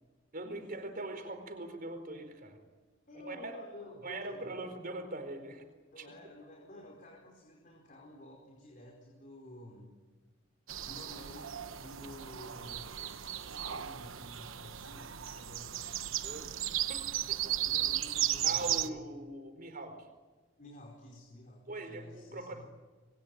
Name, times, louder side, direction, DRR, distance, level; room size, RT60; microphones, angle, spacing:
voice 1, 0.3-2.6 3.2-3.6 4.0-5.6 6.0-6.1 16.2-16.5 16.9-17.6 18.4-20.1 21.7-22.6, right 2 dB, 45° right, 7 dB, 4.5 m, -41 dB
voice 2, 3.1-4.7 5.9-10.0 10.8-15.9 17.6-19.1 20.6-22.6, left 1 dB, 40° left, 0 dB, 4.8 m, -51 dB
sound 1, 10.7-18.9, right 11 dB, 75° right, 1.1 m, -35 dB
27.0 x 22.0 x 9.2 m, 1.3 s
head